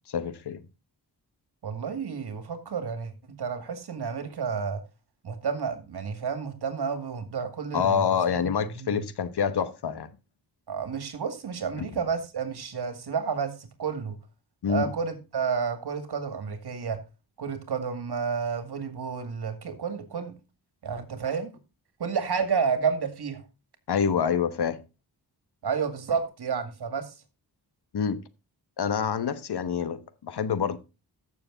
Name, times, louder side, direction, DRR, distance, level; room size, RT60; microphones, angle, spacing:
voice 1, 0.1-0.6 7.7-10.1 11.8-11.9 14.6-14.9 23.9-24.8 27.9-28.2 28.8-30.8, left 7 dB, 75° left, 1.2 m, -27 dB
voice 2, 1.6-4.8 5.2-8.1 8.4-8.5 8.7-9.1 10.7-14.2 14.7-17.0 17.4-20.3 20.8-21.5 22.0-23.4 25.6-27.1, right 6 dB, 75° right, 2.2 m, -30 dB
14.0 x 6.9 x 3.9 m
wide cardioid pair, 90°, 39 cm